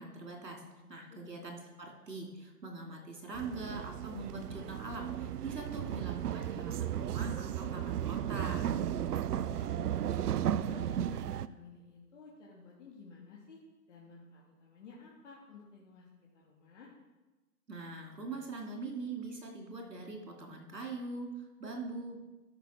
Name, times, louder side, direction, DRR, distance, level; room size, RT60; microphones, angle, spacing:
voice 1, 0.0-0.6 0.9-8.7 17.7-22.2, right 3 dB, 90° right, 1 dB, 2.8 m, -42 dB
voice 2, 0.8-1.3 9.2-10.3 10.6-13.6 13.9-16.1 16.3-16.9, left 4 dB, 45° left, -3 dB, 2.1 m, -53 dB
sound 1, 3.3-11.5, right 10 dB, 70° right, 0.5 m, -35 dB
12.5 x 6.1 x 4.3 m, 1.1 s
hypercardioid pair, 145°, 48 cm